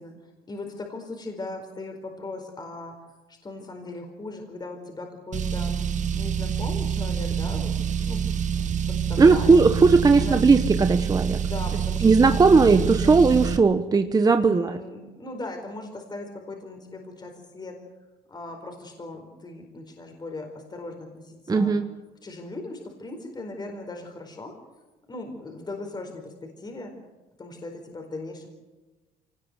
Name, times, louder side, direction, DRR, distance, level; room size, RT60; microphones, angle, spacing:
voice 1, 0.0-3.0 3.3-7.7 8.0-9.6 10.2-10.4 11.3-13.2 14.3-17.8 18.3-21.8 22.2-24.5 25.1-26.9 27.4-28.5, left 2 dB, 25° left, 3 dB, 4.6 m, -38 dB
Car, 5.3-13.6, right 7 dB, 45° right, 1.5 m, -27 dB
voice 2, 9.2-11.4 12.0-14.8 21.5-21.8, right 4 dB, 25° right, 8 dB, 1.1 m, -18 dB
24.5 x 19.0 x 8.1 m, 1.2 s
cardioid pair, 110°, 17 cm